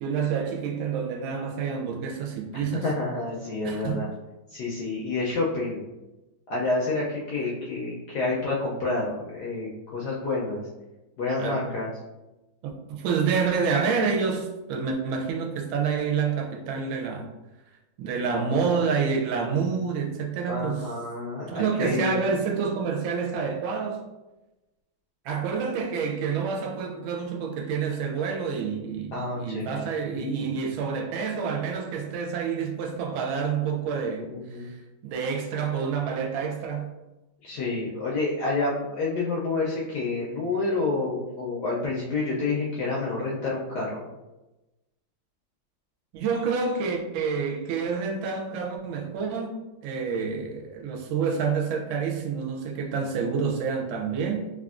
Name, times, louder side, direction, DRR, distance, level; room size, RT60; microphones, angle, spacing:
voice 1, 0.0-2.9 3.6-4.0 11.4-11.7 12.9-17.3 18.0-20.9 21.5-24.0 25.2-36.9 46.1-49.6 49.8-54.4, right 5 dB, 80° right, 2 dB, 1.3 m, -28 dB
voice 2, 2.5-4.1 4.5-5.8 6.5-10.6 11.2-11.9 20.5-22.2 29.1-29.8 30.1-30.3 34.2-34.7 37.4-44.0, left 3 dB, 75° left, -5 dB, 0.9 m, -29 dB
3.4 x 2.4 x 2.4 m, 1.0 s
omnidirectional pair, 2.3 m